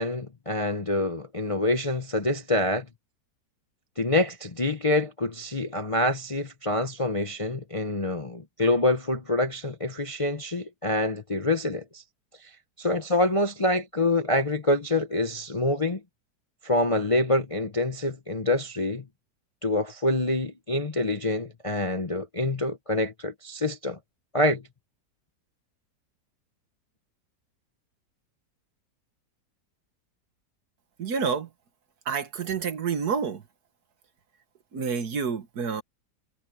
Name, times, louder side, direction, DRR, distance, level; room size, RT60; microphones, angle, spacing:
voice 1, 0.0-2.9 4.0-12.0 12.4-12.5 12.8-16.0 16.6-19.0 19.6-24.0 24.3-24.6, left 2 dB, 30° left, 0.7 m, -26 dB
voice 2, 31.0-31.5 32.1-33.4 34.7-35.8, right 6 dB, 65° right, 1.8 m, -28 dB
omnidirectional pair, 1.9 m